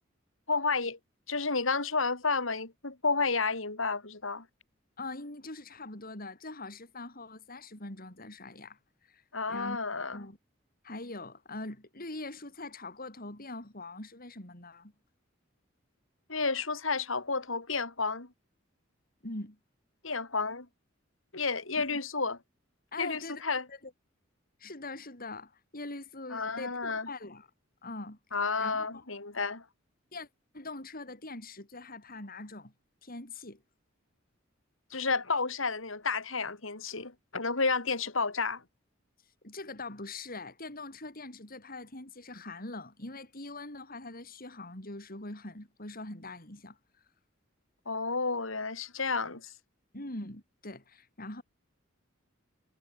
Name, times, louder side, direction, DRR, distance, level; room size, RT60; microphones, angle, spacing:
voice 1, 0.5-1.0 1.3-4.5 9.3-10.2 16.3-18.3 20.0-20.7 21.3-22.4 23.0-23.7 26.3-27.1 28.3-29.6 34.9-38.6 47.9-49.5, left 4 dB, 80° left, 3.6 m, -31 dB
voice 2, 5.0-8.8 9.1-9.2 9.5-9.8 10.1-10.4 10.8-14.9 19.2-19.6 21.8-22.0 22.9-23.4 23.7-23.9 24.6-27.5 27.8-28.2 28.6-29.0 30.1-30.3 30.5-32.7 33.0-33.6 39.4-46.8 49.9-51.4, left 2 dB, 45° left, 6.7 m, -42 dB
head